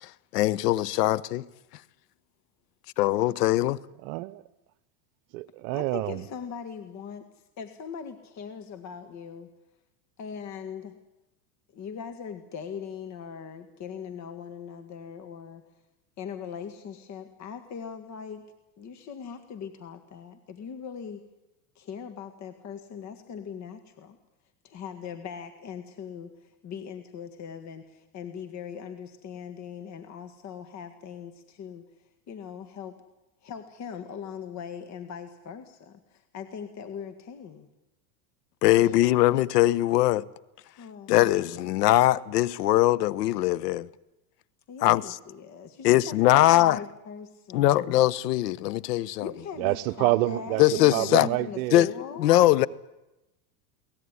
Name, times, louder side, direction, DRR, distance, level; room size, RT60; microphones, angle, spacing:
voice 1, 0.0-1.4 3.0-3.8 38.6-40.2 41.1-43.9 44.8-45.2 45.8-46.8 47.5-49.3 50.6-51.3 51.7-51.9 52.2-52.7, left 15 dB, 80° left, 1.1 m, -21 dB
voice 2, 4.0-4.4 5.3-6.2 49.6-51.8 52.6-52.7, right 19 dB, 60° right, 1.0 m, -28 dB
voice 3, 5.7-9.5 10.2-11.0 11.7-15.6 16.2-18.5 18.8-21.2 21.8-24.2 24.6-33.0 33.4-37.7 38.8-39.0 40.8-41.6 44.7-48.0 49.2-52.3, left 7 dB, 35° left, 1.9 m, -40 dB
22.5 x 18.5 x 9.8 m
supercardioid pair, 120°, 47 cm